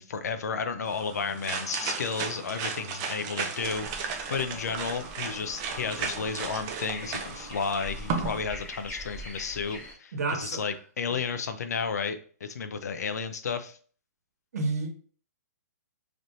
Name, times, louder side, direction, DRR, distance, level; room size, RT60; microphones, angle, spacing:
voice 1, 0.0-10.1 10.4-13.8, left 5 dB, 75° left, 0.6 m, -32 dB
sound 1, 0.9-8.4, right 6 dB, 20° right, 0.4 m, -35 dB
sound 2, 3.6-9.9, left 1 dB, 15° left, 0.8 m, -43 dB
voice 2, 10.1-10.8 11.1-11.2 14.5-14.9, right 3 dB, 70° right, 1.2 m, -30 dB
3.3 x 2.7 x 4.2 m
hypercardioid pair, 165°, 9 cm